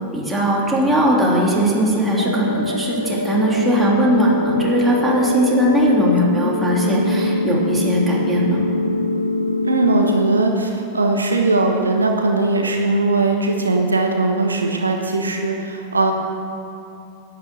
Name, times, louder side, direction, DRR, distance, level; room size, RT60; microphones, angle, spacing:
voice 1, 0.1-8.6, equal, 10° right, -4 dB, 3.1 m, -19 dB
sound 1, 2.2-10.2, left 2 dB, 90° left, 0.5 m, -23 dB
voice 2, 9.6-16.1, right 2 dB, 75° right, 3 dB, 1.1 m, -19 dB
11.0 x 9.4 x 7.7 m, 2.8 s
figure-of-eight pair, 90°, 0 cm